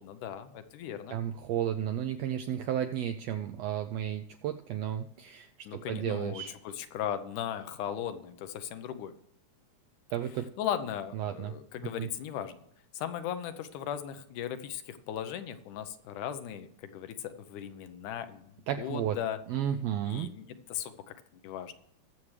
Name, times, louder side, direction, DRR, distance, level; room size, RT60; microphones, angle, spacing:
voice 1, 0.0-1.2 5.7-9.1 10.6-12.6 12.9-19.4 20.1-21.1 21.4-21.7, left 9 dB, 90° left, 10 dB, 2.3 m, -37 dB
voice 2, 1.1-6.5 10.1-10.5 11.1-11.5 12.0-12.1 18.7-19.2 19.5-20.3, right 10 dB, 85° right, 7 dB, 1.5 m, -33 dB
20.5 x 7.3 x 3.2 m, 0.76 s
omnidirectional pair, 3.5 m